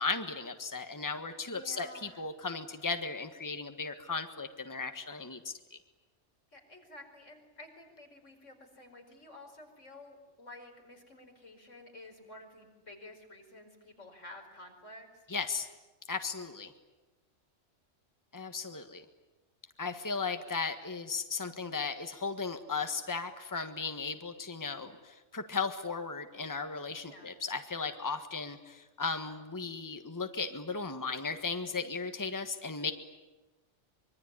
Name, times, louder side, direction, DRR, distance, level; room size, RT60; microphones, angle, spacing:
voice 1, 0.0-5.8 15.3-15.7 16.1-16.7 18.3-19.0 19.8-32.9, left 4 dB, 15° left, 7 dB, 1.5 m, -36 dB
voice 2, 1.4-2.2 6.5-15.2 27.1-27.3, left 1 dB, 90° left, 3 dB, 5.4 m, -51 dB
25.0 x 23.5 x 9.9 m, 1.1 s
omnidirectional pair, 1.2 m